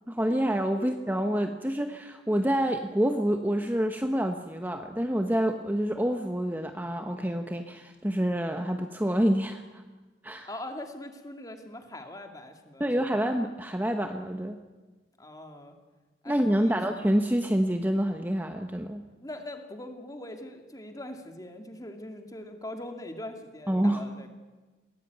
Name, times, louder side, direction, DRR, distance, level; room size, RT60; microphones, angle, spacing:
voice 1, 0.1-9.8 10.2-10.5 12.8-14.6 16.3-19.0 23.7-24.0, equal, 10° right, 5 dB, 1.0 m, -27 dB
voice 2, 10.4-12.9 15.2-15.8 16.2-16.8 19.2-24.3, left 1 dB, 20° left, 5 dB, 2.4 m, -41 dB
22.0 x 17.0 x 9.3 m, 1.3 s
head